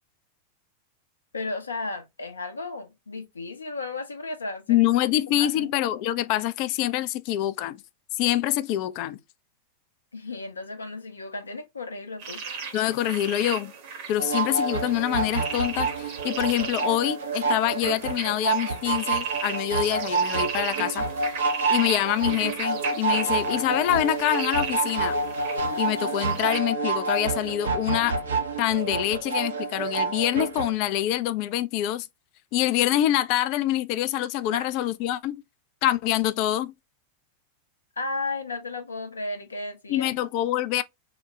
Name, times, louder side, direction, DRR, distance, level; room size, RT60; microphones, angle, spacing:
voice 1, 1.3-4.8 5.3-5.7 10.1-12.4 34.5-34.6 38.0-40.1, left 3 dB, 75° left, 0.7 m, -34 dB
voice 2, 4.7-7.8 8.2-9.2 12.7-13.7 14.1-21.1 21.7-25.2 25.8-28.2 28.6-32.1 32.5-35.4 35.8-36.7 39.9-40.8, left 13 dB, 45° left, 0.3 m, -25 dB
sound 1, 12.2-26.6, right 6 dB, 50° right, 0.9 m, -37 dB
sound 2, 14.2-30.7, right 4 dB, 65° right, 0.6 m, -28 dB
3.8 x 2.1 x 3.0 m
figure-of-eight pair, 90°, 0 cm